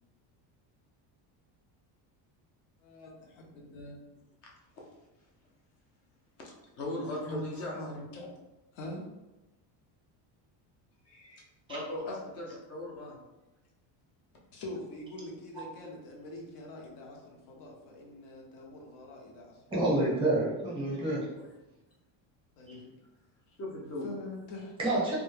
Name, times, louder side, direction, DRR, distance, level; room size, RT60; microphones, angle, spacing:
voice 1, 2.8-4.1 6.9-8.3 8.7-9.0 12.1-12.2 14.5-20.1 22.6-23.0 23.5-23.6 24.0-24.8, left 1 dB, 70° left, 0 dB, 0.7 m, -44 dB
voice 2, 6.4-7.8 11.1-13.2 20.9-21.0 21.4-21.5 23.6-24.1, left 1 dB, 35° left, -2 dB, 0.4 m, -39 dB
voice 3, 19.7-21.2 24.8-25.2, right 2 dB, 10° right, -6 dB, 0.6 m, -28 dB
2.2 x 2.1 x 3.0 m, 1.0 s
cardioid pair, 180°, 47 cm